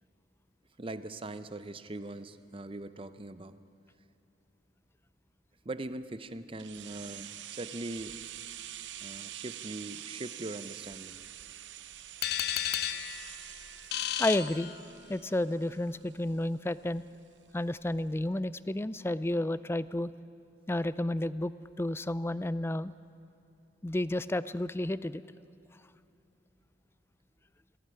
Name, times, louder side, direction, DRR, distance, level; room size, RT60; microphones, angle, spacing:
voice 1, 0.8-3.6 5.6-8.2 9.0-11.2, right 2 dB, 30° right, 12 dB, 0.7 m, -41 dB
sound 1, 6.6-16.4 16.7-16.8, right 12 dB, 75° right, 0.6 m, -46 dB
sound 2, 12.2-15.3, left 12 dB, 60° left, 0.6 m, -34 dB
voice 2, 14.2-14.7 15.1-17.0 17.5-20.1 20.7-22.9 23.8-25.2, left 1 dB, 15° left, 16 dB, 0.4 m, -31 dB
20.0 x 15.5 x 9.7 m, 2.8 s
head